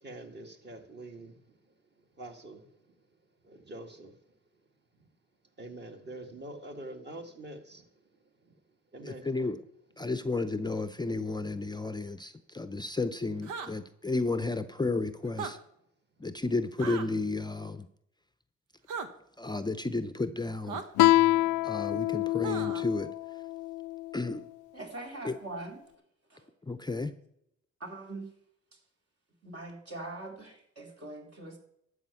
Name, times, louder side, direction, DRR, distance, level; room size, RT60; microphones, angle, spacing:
voice 1, 0.0-1.4 2.2-2.7 3.4-4.1 5.6-7.8 8.9-9.5, right 2 dB, 35° right, 4 dB, 2.0 m, -45 dB
voice 2, 9.0-9.6 10.0-15.6 16.2-17.9 19.4-20.8 21.6-23.1 24.1-24.5 25.2-25.3 26.7-27.1, left 3 dB, 15° left, 11 dB, 0.6 m, -32 dB
sound 1, 13.4-13.7 15.3-15.5 16.8-17.1 18.9-19.1 20.7-20.8 22.4-22.9, right 6 dB, 90° right, 1.2 m, -37 dB
Guitar, 21.0-24.2, left 17 dB, 80° left, 0.5 m, -26 dB
voice 3, 24.7-25.8 26.3-26.5 27.8-28.4 28.7-28.8 29.4-31.6, right 2 dB, 50° right, 1 dB, 3.1 m, -42 dB
12.0 x 5.0 x 8.4 m, 0.74 s
cardioid pair, 90°, 30 cm